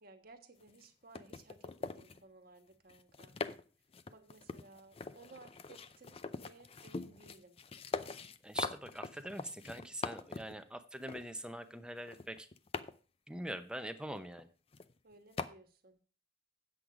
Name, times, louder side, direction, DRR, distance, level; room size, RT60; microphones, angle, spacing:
voice 1, 0.0-3.4 4.1-7.6 15.0-16.0, right 3 dB, 55° right, 6 dB, 1.4 m, -59 dB
sound 1, 0.6-0.8 1.1-2.2 2.9-3.6 3.9-10.6 11.1-11.2 12.0-12.9 14.4-14.5 14.7-15.0 15.4-15.5, left 4 dB, 30° left, 0.5 m, -43 dB
voice 2, 8.4-12.5 13.3-14.5, right 1 dB, 5° right, 9 dB, 0.7 m, -43 dB
8.6 x 7.9 x 4.9 m, 0.37 s
head